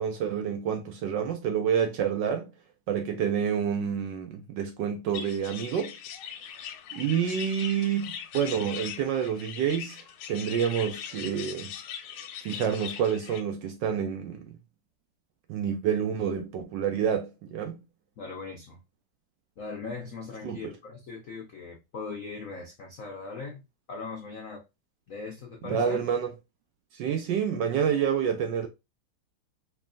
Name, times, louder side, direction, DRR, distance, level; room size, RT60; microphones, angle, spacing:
voice 1, 0.0-2.5 2.9-5.9 6.9-11.7 12.4-14.6 15.5-17.8 20.4-20.8 25.6-26.3 26.9-28.7, right 8 dB, 75° right, 1.1 m, -28 dB
sound 1, 5.1-13.4, left 8 dB, 85° left, 1.5 m, -40 dB
voice 2, 18.2-18.8 19.6-23.6 23.9-24.6 25.1-26.0, left 4 dB, 70° left, 0.8 m, -39 dB
4.5 x 3.0 x 2.4 m
omnidirectional pair, 2.3 m